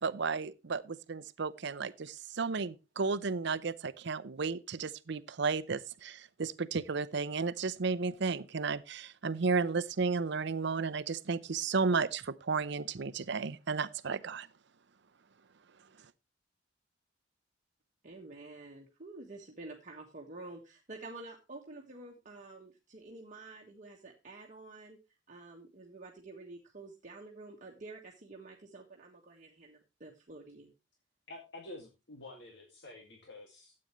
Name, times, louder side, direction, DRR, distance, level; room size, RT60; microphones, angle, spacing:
voice 1, 0.0-14.5, right 4 dB, 65° right, 0.7 m, -33 dB
voice 2, 18.0-25.0 25.3-30.7, right 2 dB, 40° right, 1.6 m, -49 dB
voice 3, 31.3-33.7, left 2 dB, 65° left, 2.1 m, -49 dB
13.0 x 8.7 x 3.1 m
head